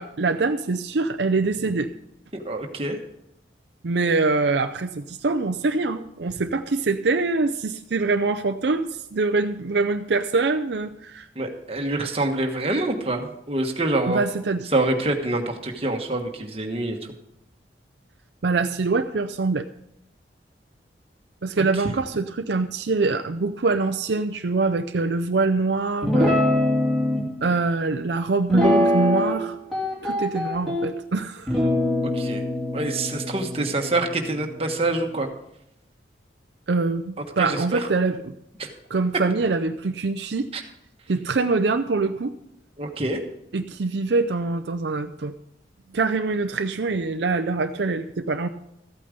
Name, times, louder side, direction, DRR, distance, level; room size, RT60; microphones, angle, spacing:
voice 1, 0.0-1.9 3.8-11.3 14.1-14.6 18.4-19.6 21.4-26.3 27.4-29.6 30.0-31.6 36.7-38.3 38.9-40.5 41.1-42.3 43.5-45.3 45.9-48.5, right 3 dB, 70° right, 8 dB, 0.5 m, -24 dB
voice 2, 2.3-3.0 11.3-14.2 14.7-17.0 21.6-21.7 32.1-32.4 32.7-35.3 37.4-37.9 38.6-38.7 40.5-40.6 42.8-43.2, right 2 dB, 35° right, 3 dB, 1.3 m, -26 dB
Guitar, 26.0-27.2 28.5-29.4 29.7-30.9 31.5-34.9, left 1 dB, ahead, 3.0 m, -23 dB
14.0 x 8.6 x 5.2 m, 0.80 s
head